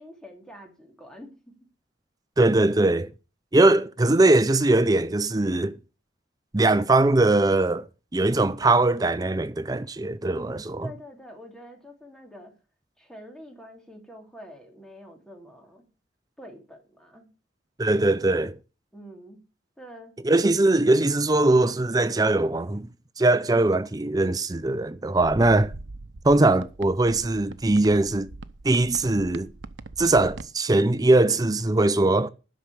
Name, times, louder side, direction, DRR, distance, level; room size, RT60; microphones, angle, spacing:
voice 1, 0.0-1.5 10.2-12.5 13.0-15.8 16.4-17.3 18.9-19.4 19.8-20.4, equal, 5° left, 2.7 m, -45 dB
voice 2, 2.4-3.1 3.5-5.7 6.5-7.9 8.1-10.9 17.8-18.5 20.2-22.9 23.2-25.7 26.2-28.3 28.6-29.5 30.0-32.3, right 2 dB, 20° right, 0.5 m, -21 dB
sound 1, 25.2-30.5, right 2 dB, 85° right, 0.8 m, -41 dB
11.5 x 6.0 x 8.3 m
head